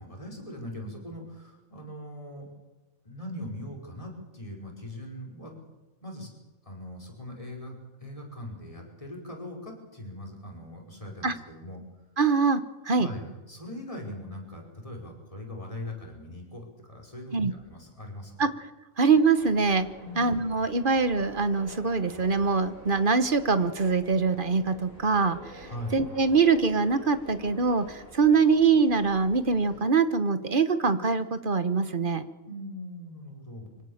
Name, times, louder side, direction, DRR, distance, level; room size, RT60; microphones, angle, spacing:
voice 1, 0.0-2.5 3.0-5.5 6.0-6.3 6.6-7.7 8.0-11.8 13.0-18.5 20.0-20.4 25.6-26.0 32.5-33.7, left 1 dB, 25° left, 1 dB, 5.3 m, -40 dB
voice 2, 12.2-13.1 17.3-17.5 18.4-18.5 19.0-19.9 20.2-32.3, right 4 dB, 40° right, 12 dB, 1.2 m, -24 dB
sound 1, 19.4-29.8, left 1 dB, 85° right, 8.3 m, -48 dB
25.0 x 17.0 x 7.3 m, 1.1 s
omnidirectional pair, 1.4 m